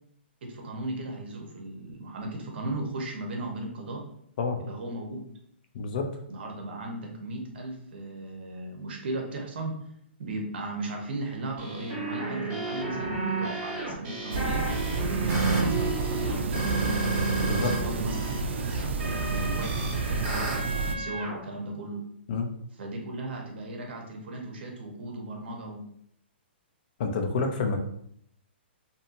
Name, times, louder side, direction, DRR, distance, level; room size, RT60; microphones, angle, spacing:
voice 1, 0.4-4.0 4.6-5.2 6.3-9.7 10.2-14.7 15.1-17.0 17.6-18.4 19.0-22.0 22.8-25.8, right 2 dB, 65° right, 1 dB, 0.8 m, -36 dB
voice 2, 5.7-6.1 17.4-17.7 22.3-22.5 27.0-27.8, left 4 dB, 50° left, 4 dB, 0.5 m, -28 dB
sound 1, 11.6-17.8 18.1-21.4, right 3 dB, 30° right, 1.3 m, -31 dB
sound 2, 14.3-21.0, right 3 dB, 85° right, 0.4 m, -30 dB
2.7 x 2.6 x 2.5 m, 0.70 s
hypercardioid pair, 155°, 6 cm